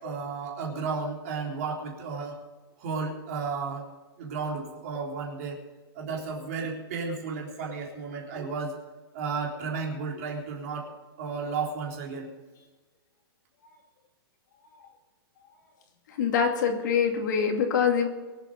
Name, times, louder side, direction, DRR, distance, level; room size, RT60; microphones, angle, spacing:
voice 1, 0.0-2.4 2.8-3.9 4.2-5.6 5.9-8.8 9.1-10.9 11.2-12.3, right 4 dB, 35° right, -1 dB, 3.7 m, -33 dB
voice 2, 16.2-18.1, left 6 dB, 45° left, 3 dB, 2.4 m, -24 dB
23.5 x 8.1 x 5.3 m, 1.3 s
hypercardioid pair, 180°, 13 cm